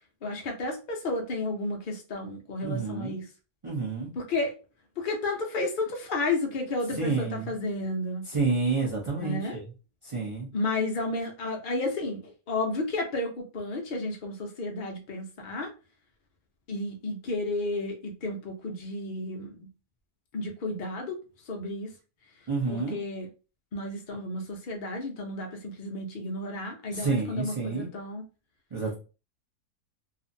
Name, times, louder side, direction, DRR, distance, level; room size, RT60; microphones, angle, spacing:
voice 1, 0.2-3.2 4.2-4.6 5.0-8.2 9.2-9.6 10.5-15.7 16.7-19.7 20.3-21.2 21.5-21.9 22.7-23.3 23.7-28.2, left 2 dB, 75° left, 0.4 m, -32 dB
voice 2, 2.6-3.2 3.6-4.1 6.9-7.5 8.3-9.7 10.0-10.5 22.5-23.0 26.9-27.9 28.7-28.9, right 4 dB, 50° right, 0.3 m, -29 dB
2.7 x 2.5 x 2.6 m
omnidirectional pair, 1.7 m